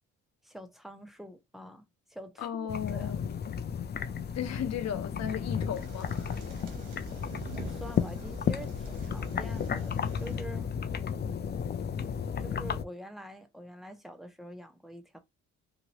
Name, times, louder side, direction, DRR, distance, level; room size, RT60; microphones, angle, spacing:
voice 1, 0.4-3.1 7.5-10.7 12.4-15.2, equal, ahead, 0.8 m, -46 dB
voice 2, 2.4-3.6 4.3-6.4, left 9 dB, 60° left, 0.8 m, -36 dB
sound 1, 2.7-12.8, left 7 dB, 35° left, 0.4 m, -33 dB
sound 2, 5.2-10.4, right 6 dB, 85° right, 1.0 m, -47 dB
2.9 x 2.6 x 2.9 m
cardioid pair, 90°, 30 cm